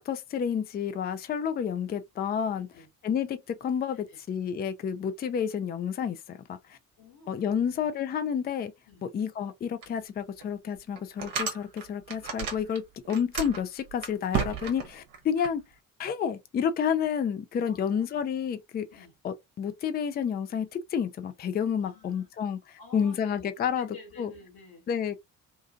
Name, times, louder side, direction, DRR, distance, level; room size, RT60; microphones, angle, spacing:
voice 1, 0.0-2.7 3.0-6.8 7.3-8.7 9.0-15.6 16.0-18.9 19.2-22.6 22.9-23.9 24.2-24.3 24.9-25.1, left 7 dB, 25° left, 0.4 m, -30 dB
voice 2, 2.5-2.9 3.9-4.2 6.7-8.2 8.8-9.1 17.7-18.2 18.9-19.1 21.8-22.3 22.8-24.9, left 4 dB, 55° left, 1.4 m, -51 dB
sound 1, 9.8-9.9 10.4-10.5 11.0-12.8 13.0-15.5, right 7 dB, 50° right, 0.9 m, -33 dB
2.6 x 2.4 x 2.4 m
figure-of-eight pair, 45°, 43 cm